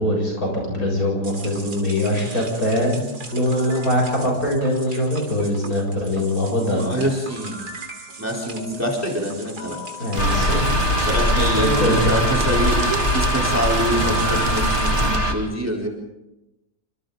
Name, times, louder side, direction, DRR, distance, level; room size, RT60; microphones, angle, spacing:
voice 1, 0.0-3.0 3.3-6.9 10.0-10.6 11.4-12.1, left 1 dB, 60° left, 0 dB, 8.0 m, -22 dB
sound 1, 1.2-14.9, right 2 dB, 75° right, 3.6 m, -36 dB
voice 2, 6.6-7.6 8.2-9.8 11.0-12.8 13.1-15.9, equal, 10° right, -2 dB, 4.0 m, -25 dB
sound 2, 10.1-15.2, right 6 dB, 40° right, 0.8 m, -30 dB
sound 3, 10.2-15.3, equal, 40° left, 2.6 m, -21 dB
28.5 x 26.0 x 4.0 m, 0.96 s
omnidirectional pair, 1.7 m